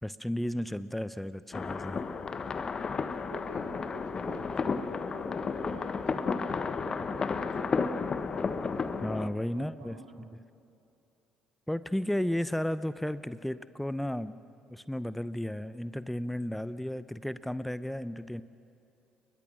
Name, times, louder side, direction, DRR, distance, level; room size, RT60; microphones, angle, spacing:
voice 1, 0.0-2.0 9.0-10.0 11.7-14.4 14.7-18.4, left 1 dB, 5° left, 15 dB, 0.8 m, -33 dB
sound 1, 1.5-9.3, left 5 dB, 35° left, 1.3 m, -32 dB
voice 2, 3.2-8.3 9.5-10.4, right 5 dB, 75° right, 4 dB, 2.4 m, -49 dB
29.0 x 22.0 x 6.4 m, 2.6 s
hypercardioid pair, 50°, 2 cm